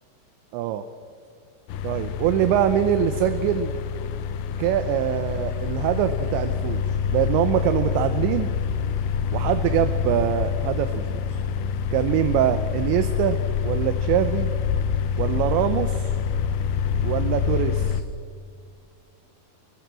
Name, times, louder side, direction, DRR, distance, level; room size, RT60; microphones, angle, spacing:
voice 1, 0.5-0.8 1.8-3.7 4.6-6.8 7.1-8.5 9.3-11.4 11.9-14.5 15.2-16.1 17.0-18.0, right 11 dB, 80° right, 8 dB, 3.0 m, -24 dB
sound 1, 1.7-18.0, left 6 dB, 75° left, 2.5 m, -26 dB
23.5 x 20.5 x 7.5 m, 2.2 s
omnidirectional pair, 5.2 m